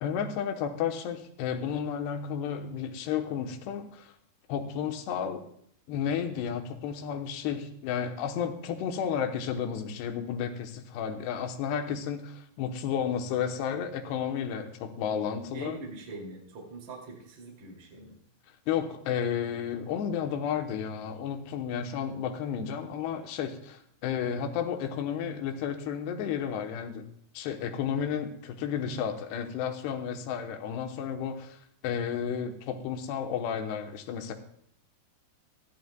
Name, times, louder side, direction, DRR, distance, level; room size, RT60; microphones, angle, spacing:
voice 1, 0.0-4.1 4.5-5.5 5.9-15.8 18.7-27.1 27.3-31.6 31.8-34.3, left 8 dB, 75° left, 5 dB, 2.8 m, -32 dB
voice 2, 15.5-18.2, right 3 dB, 45° right, -2 dB, 3.5 m, -43 dB
20.5 x 13.5 x 2.3 m, 0.66 s
omnidirectional pair, 5.4 m